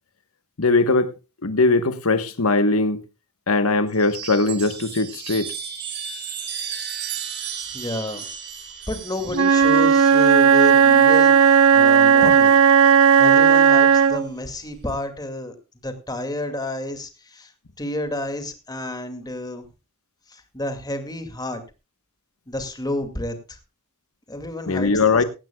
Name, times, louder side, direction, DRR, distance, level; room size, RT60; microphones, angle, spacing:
voice 1, 0.6-1.1 1.4-3.0 3.5-5.5 24.7-25.2, left 3 dB, 80° left, 1.2 m, -20 dB
Chime, 3.9-11.7 12.9-13.6, right 8 dB, 55° right, 3.9 m, -35 dB
voice 2, 7.7-8.3 8.9-12.6 13.2-15.5 15.8-17.5 17.8-19.6 20.3-21.6 22.5-23.6 24.3-25.2, left 1 dB, 20° left, 2.2 m, -30 dB
Wind instrument woodwind instrument, 9.3-14.3, right 7 dB, 90° right, 1.2 m, -14 dB
17.5 x 16.0 x 2.3 m
head